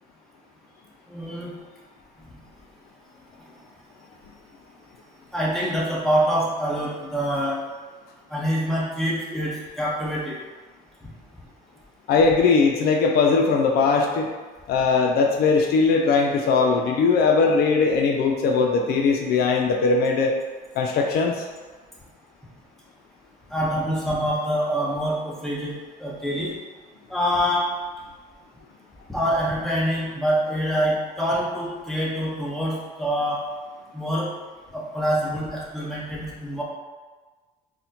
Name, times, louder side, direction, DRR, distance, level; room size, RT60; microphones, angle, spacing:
voice 1, 1.1-1.5 5.3-7.6 8.3-10.4 23.5-25.7 26.0-26.5 27.1-27.7 29.1-33.4 33.9-34.3 34.7-36.6, equal, ahead, -7 dB, 0.9 m, -25 dB
voice 2, 12.1-14.3 14.7-20.3 20.8-21.5, left 4 dB, 65° left, 2 dB, 0.4 m, -20 dB
4.1 x 2.1 x 2.7 m, 1.4 s
cardioid pair, 110°, 17 cm